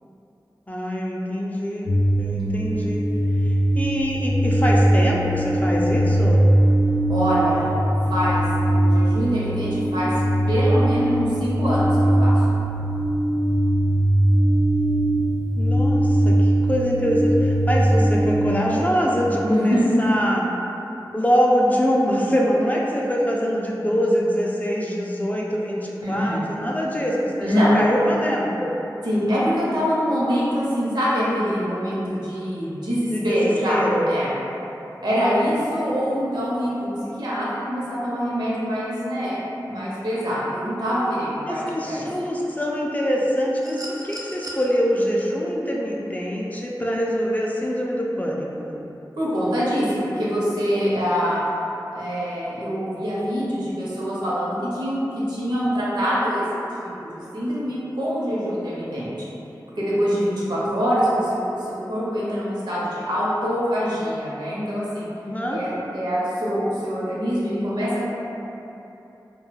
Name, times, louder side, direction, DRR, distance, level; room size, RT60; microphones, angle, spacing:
voice 1, 0.7-1.9 2.2-3.0 3.4-6.4 15.6-20.4 21.1-28.7 33.1-34.1 41.5-48.8 65.3-65.6, equal, 20° left, -3 dB, 0.3 m, -24 dB
sound 1, 1.9-18.5, right 1 dB, 90° left, 0.4 m, -20 dB
voice 2, 2.3-2.7 7.1-7.7 8.1-10.1 10.5-12.4 19.4-19.9 26.0-26.4 27.4-27.8 29.0-33.8 34.1-34.3 35.0-42.0 49.2-51.4 51.9-55.0 55.3-56.4 56.8-59.1 59.8-65.1 65.5-68.1, equal, 70° right, -8 dB, 0.8 m, -24 dB
sound 2, 43.6-44.6 46.2-46.3, right 1 dB, 50° right, 0.4 m, -37 dB
2.2 x 2.2 x 3.1 m, 2.9 s
wide cardioid pair, 45°, 8 cm